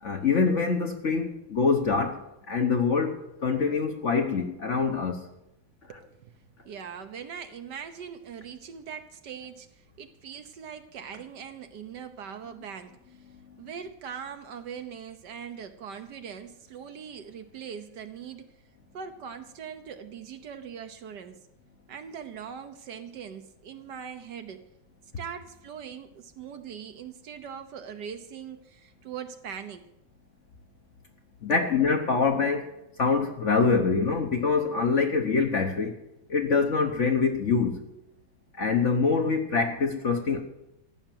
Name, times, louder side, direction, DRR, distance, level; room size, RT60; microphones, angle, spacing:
voice 1, 0.0-5.3 13.5-13.6 31.4-32.7 33.0-35.9 36.3-37.8 38.6-40.4, left 5 dB, 45° left, 1.1 m, -25 dB
voice 2, 5.9-6.4 6.6-13.3 13.6-18.6 18.9-21.4 21.9-24.7 25.2-29.9, right 7 dB, 65° right, 1.4 m, -41 dB
14.5 x 6.5 x 9.2 m
omnidirectional pair, 2.1 m